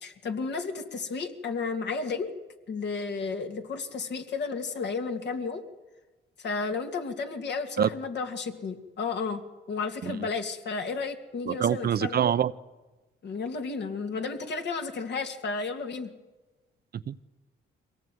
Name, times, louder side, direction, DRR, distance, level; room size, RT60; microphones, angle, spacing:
voice 1, 0.0-2.3 2.7-5.6 6.4-9.4 9.7-12.2 13.2-16.1, left 4 dB, 60° left, 5 dB, 2.6 m, -32 dB
voice 2, 11.5-12.5 16.9-17.2, right 9 dB, 50° right, 14 dB, 0.7 m, -25 dB
23.0 x 17.5 x 9.4 m, 1.2 s
cardioid pair, 90°, 20 cm